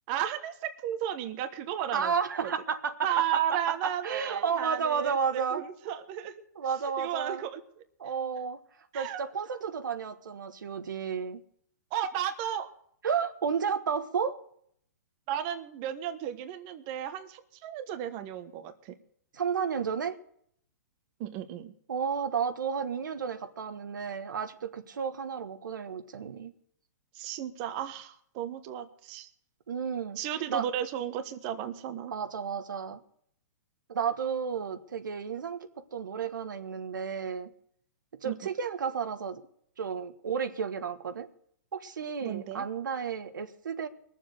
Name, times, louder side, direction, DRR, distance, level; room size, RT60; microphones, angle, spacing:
voice 1, 0.1-2.1 3.0-6.3 7.0-7.6 8.9-9.2 9.6-9.7 11.9-12.7 15.3-18.9 21.2-21.7 27.1-29.3 30.2-32.1 38.2-38.3 42.2-42.7, right 10 dB, 35° right, 1.2 m, -34 dB
voice 2, 1.9-5.6 6.5-7.4 8.0-8.6 8.9-11.4 13.0-14.4 19.3-20.1 21.9-26.5 29.7-30.2 30.5-30.6 32.1-33.0 33.9-37.5 38.2-39.4 39.8-41.3 41.7-43.9, right 6 dB, 85° right, 1.5 m, -32 dB
21.5 x 7.4 x 6.5 m
hypercardioid pair, 150°, 10 cm